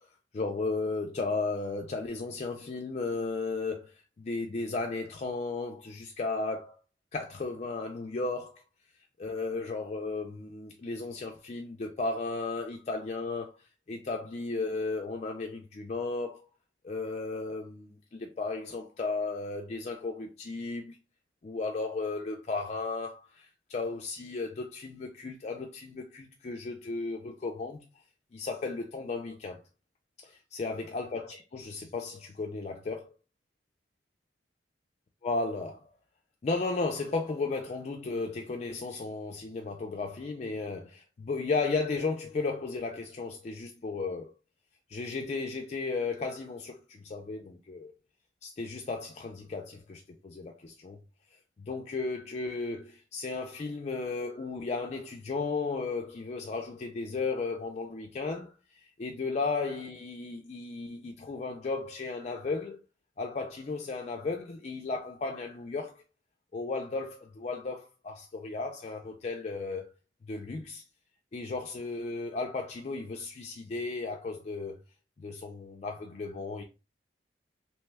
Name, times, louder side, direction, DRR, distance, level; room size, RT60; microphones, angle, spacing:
voice 1, 0.3-3.9 4.2-6.8 7.1-8.6 9.2-13.6 13.9-16.5 16.8-21.0 21.4-27.8 28.3-29.6 30.2-33.1 35.2-35.8 36.4-44.3 44.9-47.9 48.4-51.0 51.6-58.5 59.0-62.8 63.2-66.0 66.5-69.9 70.3-70.8 71.3-74.8 75.2-76.6, left 3 dB, 35° left, 0.3 m, -34 dB
2.8 x 2.2 x 3.2 m
head